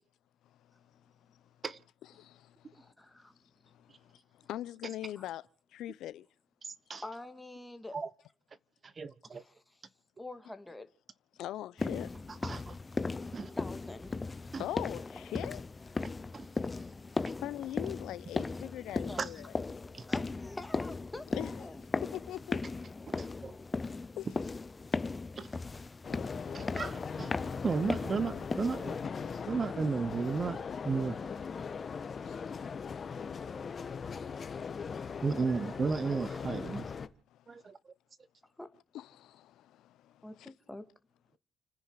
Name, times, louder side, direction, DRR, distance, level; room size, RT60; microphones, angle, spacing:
voice 1, 2.7-3.4 5.2-5.3 7.0-8.0 9.3-9.5 10.2-10.9 13.6-14.2 14.4-14.6 16.7-16.9 18.8-19.2 20.1-21.8 38.6-38.7 40.2-40.9, left 2 dB, 10° left, 2.4 m, -46 dB
voice 2, 4.5-5.4 5.7-6.2 11.4-12.1 14.6-15.6 17.4-19.5 21.3-21.7 22.1-22.6 24.2-24.3 32.2-32.5 38.9-39.7 40.4-40.5, left 13 dB, 85° left, 0.7 m, -40 dB
voice 3, 6.6-7.0 7.9-8.1 8.8-9.4 12.3-12.8 13.3-13.6 14.5-14.7 16.3-16.5 17.2-17.3 19.2-19.3 19.9-20.0 23.1-23.6 25.4-25.5 26.5-27.4 27.6-29.0 29.5-31.3 35.2-36.9 37.5-37.9, right 4 dB, 40° right, 1.2 m, -34 dB
sound 1, 11.8-29.1, left 3 dB, 25° left, 0.7 m, -37 dB
sound 2, 26.0-37.1, left 6 dB, 45° left, 1.5 m, -39 dB
30.0 x 10.0 x 4.8 m
cardioid pair, 90°, 0 cm